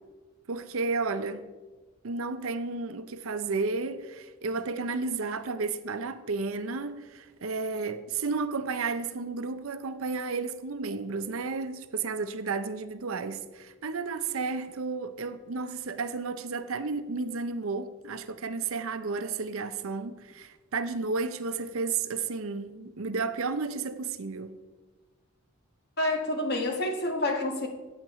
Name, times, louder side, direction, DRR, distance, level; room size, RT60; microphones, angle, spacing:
voice 1, 0.5-1.5 2.0-24.6, right 4 dB, 75° right, 0.6 m, -32 dB
voice 2, 26.0-27.7, left 1 dB, 50° left, 1.5 m, -28 dB
14.0 x 8.8 x 3.1 m
head